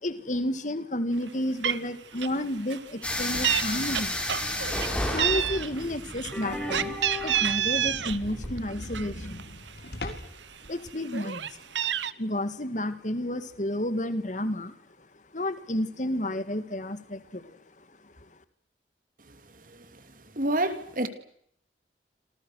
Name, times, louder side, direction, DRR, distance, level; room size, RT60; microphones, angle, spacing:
voice 1, 0.0-4.2 5.1-7.0 7.2-9.5 10.0-10.2 10.7-11.6 12.2-14.7 15.3-18.3, left 1 dB, 45° left, 2.0 m, -31 dB
Meow, 1.3-1.4 1.6-1.9 2.2-2.4 2.7-3.6 3.9-4.9 5.2-8.2 8.6-9.7 10.2-10.3 10.6-12.1, right 10 dB, 90° right, 1.1 m, -29 dB
sound 1, 3.0-8.6, left 1 dB, 5° left, 5.6 m, -32 dB
sound 2, 3.2-5.7 6.2-6.3 6.7-6.8 7.0-7.1 7.4-7.5 7.8-10.5, left 1 dB, 60° left, 3.8 m, -42 dB
voice 2, 20.4-21.1, right 1 dB, 50° right, 2.7 m, -27 dB
28.0 x 27.5 x 6.4 m
head